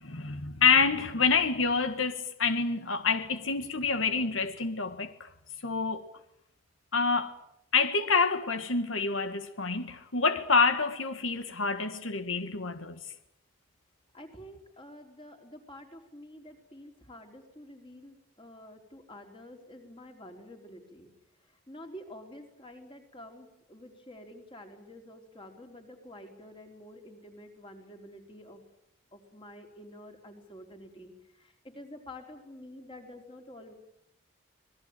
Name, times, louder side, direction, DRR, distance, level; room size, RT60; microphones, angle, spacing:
voice 1, 0.0-5.3 5.6-6.0 6.9-7.3 7.7-13.0, left 4 dB, 80° left, 1.7 m, -27 dB
voice 2, 14.1-21.1 21.4-28.6 29.1-33.7, left 1 dB, 25° left, 4.2 m, -49 dB
27.0 x 20.5 x 9.1 m
head